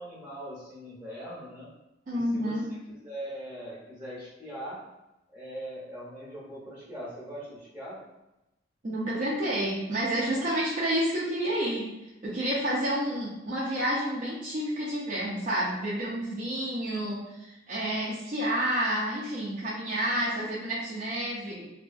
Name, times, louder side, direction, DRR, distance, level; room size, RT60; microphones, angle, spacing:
voice 1, 0.0-1.7 2.1-4.8 5.3-8.0, equal, 10° right, -7 dB, 0.7 m, -41 dB
voice 2, 2.1-2.7 8.8-11.9 12.2-21.7, right 1 dB, 45° right, -7 dB, 0.4 m, -29 dB
2.7 x 2.2 x 2.5 m, 0.95 s
head